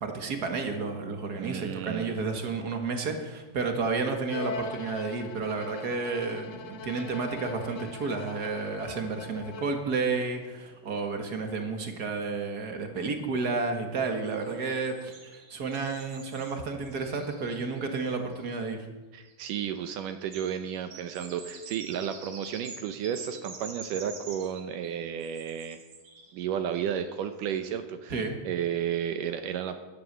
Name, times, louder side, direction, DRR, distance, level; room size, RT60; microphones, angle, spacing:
voice 1, 0.0-18.9 28.1-28.4, right 4 dB, 40° right, 5 dB, 1.4 m, -31 dB
voice 2, 1.3-2.2 19.1-25.8 26.3-28.2 28.4-29.8, right 9 dB, 75° right, 9 dB, 2.3 m, -32 dB
Bowed string instrument, 4.3-10.0, left 5 dB, 60° left, 2.1 m, -41 dB
sound 1, 10.0-11.1 11.4-11.5 11.7-11.8 14.0-18.6 19.2-27.4, right 4 dB, 55° right, 3.5 m, -48 dB
15.5 x 11.5 x 7.5 m, 1.2 s
omnidirectional pair, 4.0 m